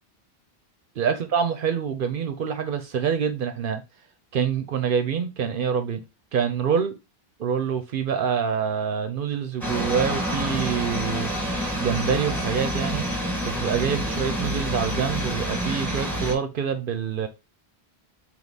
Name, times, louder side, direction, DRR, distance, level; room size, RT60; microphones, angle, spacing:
voice 1, 1.0-3.8 4.3-6.0 6.3-6.9 7.4-11.3 11.8-13.1 13.5-17.3, right 7 dB, 65° right, 0.7 m, -26 dB
sound 1, 9.6-16.3, equal, ahead, 1.2 m, -28 dB
3.4 x 2.8 x 3.9 m
omnidirectional pair, 1.1 m